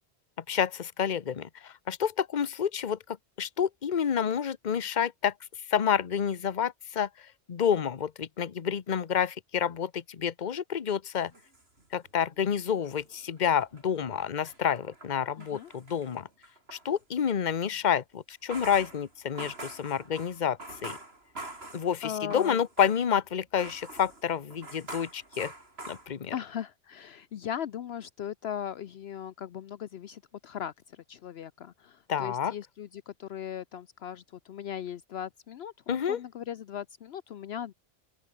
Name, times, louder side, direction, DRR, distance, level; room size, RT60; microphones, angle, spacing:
voice 1, 0.5-5.3 5.7-11.3 11.9-16.3 16.7-21.0 21.7-25.5 25.9-26.3 32.1-32.5 35.9-36.2, left 8 dB, 45° left, 1.0 m, -29 dB
sound 1, 11.2-12.4 12.7-16.9 18.3-23.2 23.5-26.5, right 2 dB, 65° right, 5.1 m, -45 dB
voice 2, 15.4-15.7 22.0-22.6 26.3-30.7 31.1-35.7 36.1-37.7, left 9 dB, 70° left, 0.9 m, -38 dB
open air
omnidirectional pair, 1.1 m